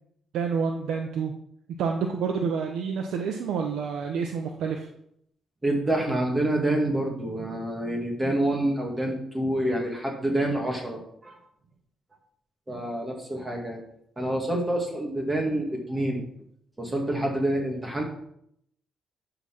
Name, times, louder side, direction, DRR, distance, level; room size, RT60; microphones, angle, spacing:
voice 1, 0.3-1.3 1.8-4.9, right 6 dB, 80° right, 3 dB, 0.9 m, -28 dB
voice 2, 5.6-11.4 12.7-13.8 14.2-16.2 16.8-18.0, right 1 dB, 20° right, 0 dB, 2.0 m, -27 dB
11.5 x 4.0 x 5.9 m, 0.72 s
cardioid pair, 90°, 0 cm